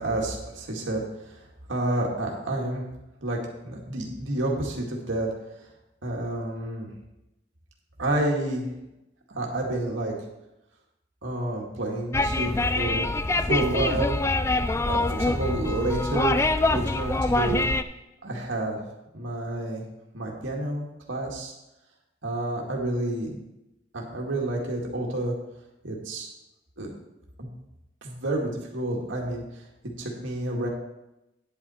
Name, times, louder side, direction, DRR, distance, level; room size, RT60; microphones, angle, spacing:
voice 1, 0.0-1.4 1.7-2.8 3.2-3.4 3.6-5.3 6.0-6.9 8.0-8.6 9.3-10.1 11.2-13.1 13.4-14.2 14.8-17.6 18.2-18.8 19.1-19.8 20.1-21.5 22.2-23.4 23.9-25.3 25.8-26.3 26.8-26.9 27.4-27.5 28.0-29.6 30.0-30.7, right 1 dB, 85° right, -1 dB, 2.0 m, -29 dB
sound 1, 12.1-17.8, left 2 dB, 15° left, 0.3 m, -25 dB
10.0 x 8.3 x 4.3 m, 0.93 s
head